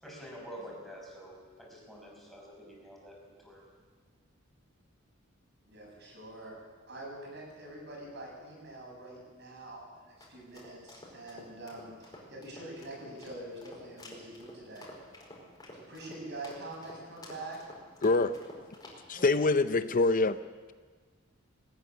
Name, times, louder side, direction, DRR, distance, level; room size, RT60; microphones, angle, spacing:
voice 1, 0.0-3.7, equal, ahead, 6.0 m, -48 dB
voice 2, 5.7-6.6 6.9-14.9 15.7-17.6 19.1-19.5, right 1 dB, 60° right, 7.9 m, -45 dB
sound 1, 9.9-19.4, left 1 dB, 20° left, 4.8 m, -51 dB
voice 3, 18.0-18.4 19.1-20.4, left 3 dB, 45° left, 0.6 m, -25 dB
20.0 x 14.0 x 9.8 m
head